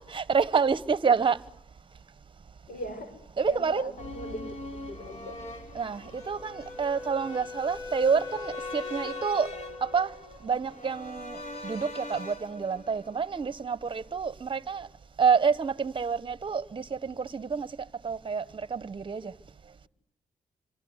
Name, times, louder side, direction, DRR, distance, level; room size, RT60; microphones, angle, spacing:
voice 1, 0.1-1.4 3.4-3.9 5.7-9.5 9.8-10.1 10.4-11.4 11.6-14.9 15.2-17.7 18.0-18.4 18.7-19.3, right 6 dB, 35° right, 1.0 m, -28 dB
voice 2, 2.7-3.1 3.4-5.4, left 1 dB, 70° left, 6.3 m, -40 dB
sound 1, 4.0-14.1 14.4-14.5, left 2 dB, 50° left, 4.1 m, -43 dB
Wind instrument woodwind instrument, 6.1-10.2, left 3 dB, 25° left, 1.6 m, -40 dB
26.5 x 24.0 x 8.1 m
cardioid pair, 80°, 15 cm